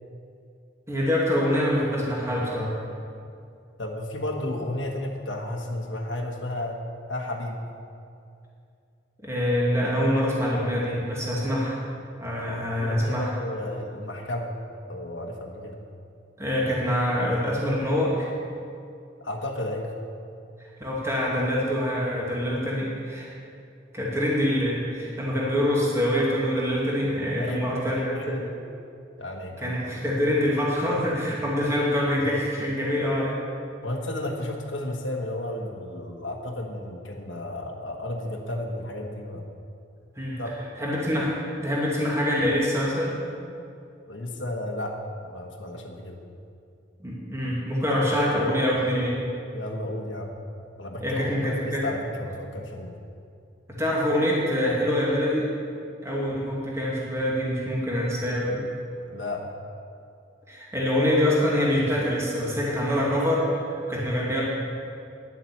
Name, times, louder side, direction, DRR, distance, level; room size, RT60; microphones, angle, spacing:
voice 1, 0.9-2.7 9.2-11.8 12.2-13.3 16.4-18.3 20.8-23.3 23.9-28.4 29.6-33.4 40.2-40.4 40.8-43.2 47.0-49.2 51.0-51.8 53.7-55.5 56.0-58.6 60.5-64.5, equal, 15° right, -5 dB, 2.4 m, -25 dB
voice 2, 3.8-6.8 7.1-7.6 12.8-14.5 14.9-15.8 19.2-19.9 27.4-28.5 29.2-29.8 33.8-39.4 40.4-40.7 44.1-45.0 45.2-46.2 49.5-50.3 50.8-52.9 59.1-59.4, left 1 dB, 90° left, 0 dB, 1.4 m, -33 dB
11.0 x 7.5 x 8.5 m, 2.5 s
head